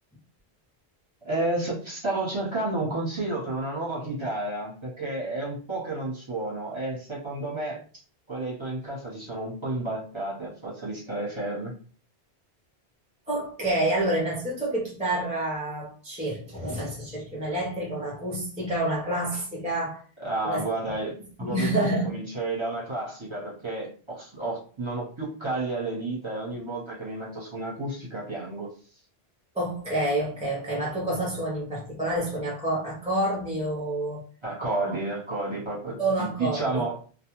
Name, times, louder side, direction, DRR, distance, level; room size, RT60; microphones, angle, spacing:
voice 1, 1.2-7.8 8.3-11.7 20.2-28.7 34.4-37.0, right 2 dB, 30° right, 1.0 m, -31 dB
voice 2, 13.3-20.0 20.4-20.6 21.4-22.1 29.5-34.2 36.0-36.8, right 1 dB, 10° right, 0.7 m, -28 dB
2.3 x 2.3 x 3.0 m
omnidirectional pair, 1.1 m